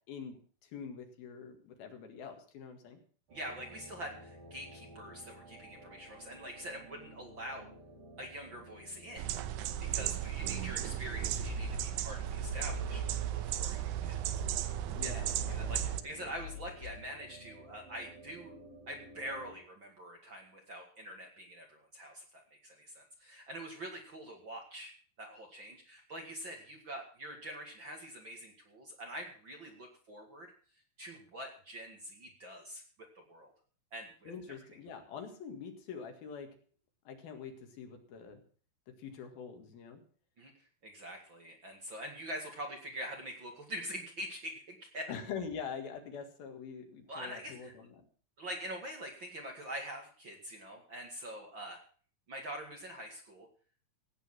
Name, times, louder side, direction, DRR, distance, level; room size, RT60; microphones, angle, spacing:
voice 1, 0.1-3.0 14.9-16.4 34.3-36.5 37.1-38.4 38.9-40.0 45.1-48.0, left 6 dB, 70° left, 5 dB, 3.7 m, -45 dB
voice 2, 3.3-7.7 8.2-9.3 9.8-14.2 15.0-18.5 18.9-24.9 25.2-30.5 31.0-32.8 33.3-33.5 33.9-34.3 40.4-40.5 40.8-45.1 47.1-47.7 48.4-51.8 52.3-53.5, equal, 40° right, 2 dB, 2.2 m, -45 dB
sound 1, 3.3-19.6, right 1 dB, 65° right, 5.5 m, -54 dB
sound 2, 9.2-16.0, right 13 dB, 80° right, 2.5 m, -35 dB
sound 3, 9.7-17.1, left 7 dB, 90° left, 1.0 m, -46 dB
16.5 x 9.2 x 5.9 m, 0.44 s
omnidirectional pair, 4.4 m